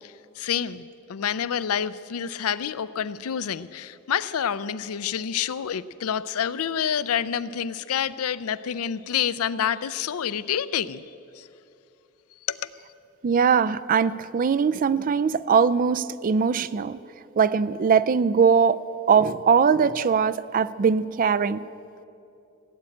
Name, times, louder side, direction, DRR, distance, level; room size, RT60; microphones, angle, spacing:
voice 1, 0.0-11.0 11.4-11.5 12.5-12.7, left 8 dB, 85° left, 0.5 m, -28 dB
voice 2, 13.2-17.0 17.4-21.6, right 6 dB, 40° right, 0.4 m, -21 dB
16.5 x 8.9 x 8.5 m
head